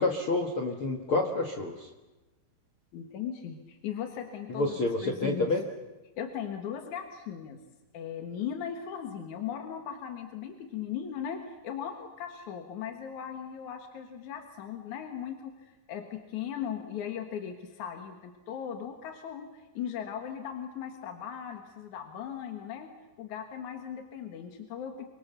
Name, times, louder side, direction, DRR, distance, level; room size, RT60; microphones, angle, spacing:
voice 1, 0.0-1.9 4.5-5.6, left 2 dB, 75° left, 3 dB, 1.2 m, -28 dB
voice 2, 2.9-5.5 6.2-7.6 7.9-22.9 23.2-25.2, left 8 dB, 60° left, 5 dB, 2.2 m, -38 dB
29.0 x 24.0 x 6.8 m, 1.1 s
omnidirectional pair, 5.3 m